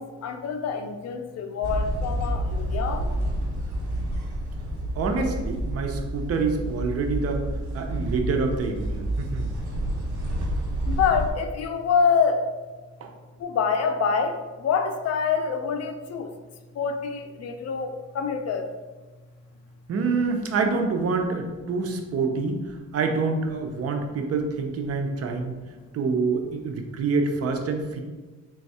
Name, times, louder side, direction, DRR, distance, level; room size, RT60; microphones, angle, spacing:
voice 1, 0.0-3.0 10.9-12.4 13.4-14.4 14.6-16.3 16.8-18.6, left 6 dB, 55° left, 7 dB, 0.5 m, -26 dB
sound 1, 1.6-11.3, right 1 dB, 80° right, 1.1 m, -29 dB
voice 2, 5.0-7.5 7.7-9.5 13.0-13.1 19.9-25.6 25.9-28.0, right 4 dB, 50° right, 4 dB, 0.6 m, -26 dB
3.4 x 2.3 x 4.1 m, 1.3 s
cardioid pair, 90°, 30 cm